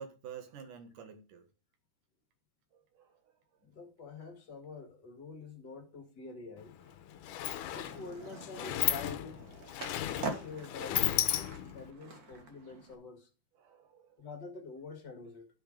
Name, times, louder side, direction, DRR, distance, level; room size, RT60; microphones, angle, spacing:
voice 1, 0.0-1.5 2.7-3.3 7.1-7.6 13.6-14.3, right 7 dB, 90° right, 3.1 m, -50 dB
voice 2, 3.6-6.8 7.7-9.5 10.0-13.3 14.2-15.5, left 3 dB, 40° left, 2.1 m, -47 dB
Sliding door, 6.6-6.7 7.0-11.9, left 13 dB, 90° left, 2.2 m, -34 dB
Skateboard, 7.7-12.9, right 4 dB, 45° right, 1.3 m, -45 dB
11.5 x 6.0 x 5.1 m
omnidirectional pair, 3.5 m